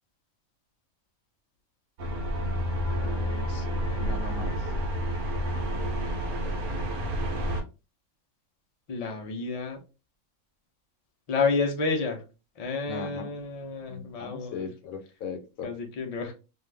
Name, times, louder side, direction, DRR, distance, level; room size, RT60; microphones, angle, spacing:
sound 1, 2.0-7.6, equal, 80° right, 1.1 m, -29 dB
voice 1, 3.0-3.9 8.9-9.8 11.3-12.2 12.6-14.7 15.6-16.3, left 4 dB, 50° left, 3 dB, 0.4 m, -30 dB
voice 2, 3.8-4.7 12.9-13.3 13.9-15.7, left 5 dB, 75° left, 6 dB, 1.0 m, -38 dB
2.6 x 2.4 x 3.2 m, 0.30 s
omnidirectional pair, 1.5 m